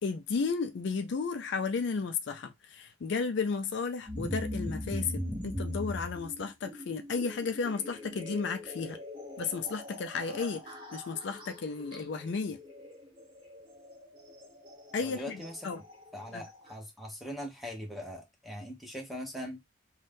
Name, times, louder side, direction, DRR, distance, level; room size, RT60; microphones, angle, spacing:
voice 1, 0.0-9.0 9.4-12.6 14.9-15.8 16.3-16.4, left 5 dB, 60° left, 0.4 m, -33 dB
sound 1, 4.1-16.7, left 1 dB, 25° right, 1.0 m, -41 dB
voice 2, 15.0-15.7 16.1-19.6, left 1 dB, ahead, 0.8 m, -41 dB
2.6 x 2.3 x 3.4 m
head